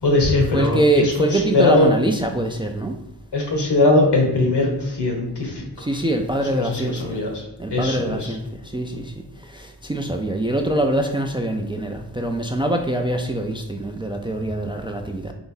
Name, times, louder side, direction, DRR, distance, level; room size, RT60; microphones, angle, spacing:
voice 1, 0.0-1.9 3.3-5.6 6.5-7.4 7.7-8.3, left 2 dB, 75° left, 1 dB, 1.3 m, -20 dB
voice 2, 0.5-3.0 5.8-7.2 7.6-9.1 9.4-15.3, right 1 dB, 15° right, 4 dB, 0.3 m, -24 dB
4.0 x 3.5 x 3.8 m, 0.85 s
wide cardioid pair, 115°, 41 cm